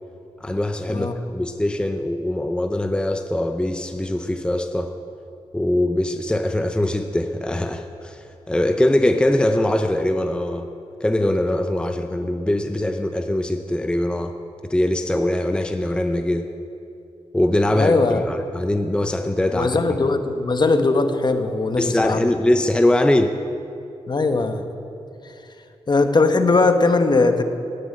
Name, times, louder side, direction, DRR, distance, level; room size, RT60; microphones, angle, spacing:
voice 1, 0.4-1.1 1.3-4.9 5.5-10.7 11.0-14.3 14.7-16.5 17.3-19.7 21.8-23.3, left 1 dB, 10° left, 6 dB, 0.7 m, -22 dB
voice 2, 17.7-18.2 19.5-22.2 24.1-24.7 25.9-27.4, left 3 dB, 40° left, 7 dB, 1.1 m, -19 dB
11.5 x 10.0 x 8.6 m, 2.7 s
cardioid pair, 70°, 11 cm